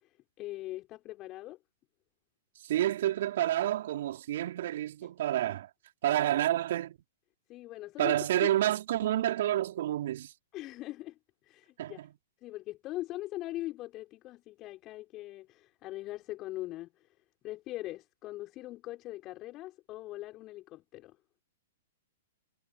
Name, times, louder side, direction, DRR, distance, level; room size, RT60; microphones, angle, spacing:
voice 1, 0.0-1.6 5.0-5.1 7.5-8.5 10.5-11.2 11.4-12.0 12.4-17.1 17.4-21.2, left 16 dB, 35° left, 6.3 m, -41 dB
voice 2, 2.6-5.7 6.0-7.0 8.0-10.3 11.8-12.1, right 13 dB, 60° right, 4.6 m, -29 dB
figure-of-eight pair, 110°, 0 cm